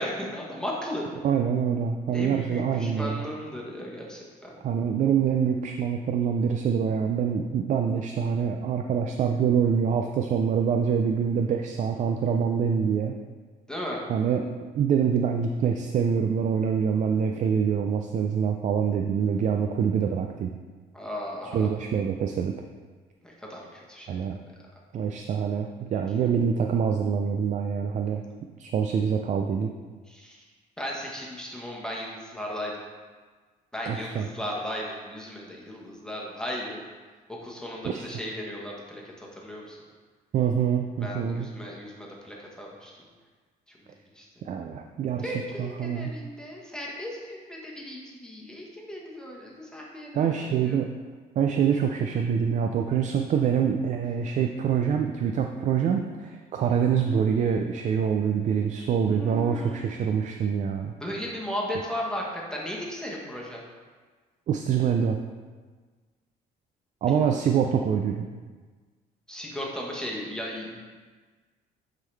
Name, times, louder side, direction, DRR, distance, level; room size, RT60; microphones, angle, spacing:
voice 1, 0.0-1.1 2.1-4.6 13.7-14.0 20.9-21.7 23.2-24.2 30.1-30.4 30.8-32.8 33.7-36.8 37.4-39.8 41.0-43.0 43.8-43.9 44.2-44.3 45.2-50.4 50.6-50.8 59.1-59.9 61.0-63.6 67.1-67.4 69.3-70.8, equal, 5° left, -3 dB, 1.3 m, -36 dB
voice 2, 1.2-3.3 4.6-13.2 14.1-14.4 14.7-20.5 21.5-22.5 24.1-24.4 24.9-28.2 28.6-29.7 33.9-34.3 37.8-38.1 40.3-41.5 44.4-46.1 50.1-50.9 51.4-60.9 64.5-65.2 67.0-68.3, right 7 dB, 45° right, 4 dB, 0.4 m, -25 dB
9.1 x 3.8 x 3.4 m, 1.4 s
cardioid pair, 110°, 17 cm